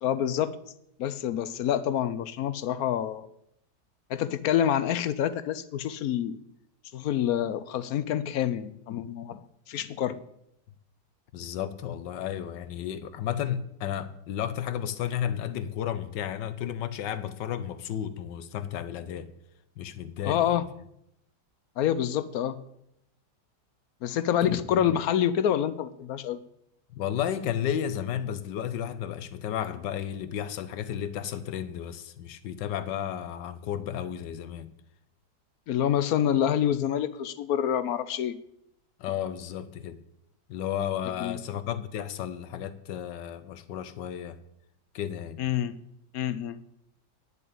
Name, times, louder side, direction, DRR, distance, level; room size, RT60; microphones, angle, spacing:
voice 1, 0.0-0.6 1.0-3.3 4.1-6.4 6.9-9.4 9.7-10.2 20.2-20.6 21.8-22.6 24.0-26.4 35.7-38.4 41.2-41.4 45.4-45.7 46.1-46.6, left 10 dB, 65° left, 1.0 m, -27 dB
voice 2, 11.3-19.3 19.8-20.6 24.5-25.0 26.9-34.7 39.0-40.0 40.5-44.4 44.9-45.4, left 9 dB, 90° left, 1.5 m, -33 dB
10.0 x 6.9 x 8.6 m
omnidirectional pair, 1.9 m